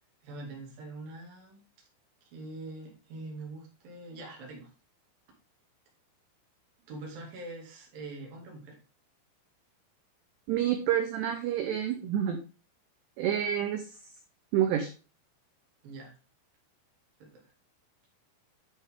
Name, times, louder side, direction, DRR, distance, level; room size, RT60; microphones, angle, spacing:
voice 1, 0.2-1.6 2.3-4.7 6.9-8.8 15.8-16.1 17.2-17.3, right 2 dB, 50° right, -1 dB, 3.6 m, -43 dB
voice 2, 10.5-12.4 13.2-13.8 14.5-14.9, right 10 dB, 85° right, 5 dB, 2.4 m, -28 dB
8.7 x 6.6 x 3.6 m, 0.33 s
omnidirectional pair, 6.0 m